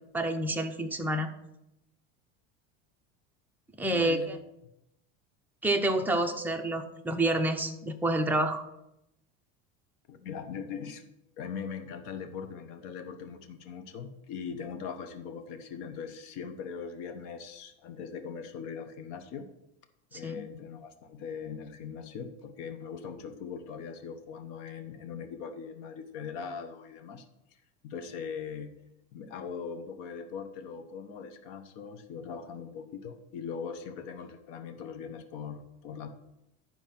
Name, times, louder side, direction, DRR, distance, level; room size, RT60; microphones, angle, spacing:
voice 1, 0.1-1.3 3.8-4.4 5.6-8.6 20.1-20.4, right 1 dB, 5° right, 3 dB, 0.7 m, -28 dB
voice 2, 3.9-4.4 10.1-11.0 11.4-19.5 20.1-27.2 27.8-28.7 29.1-36.1, left 6 dB, 60° left, 8 dB, 1.3 m, -40 dB
10.5 x 4.5 x 5.9 m, 0.87 s
supercardioid pair, 135°, 37 cm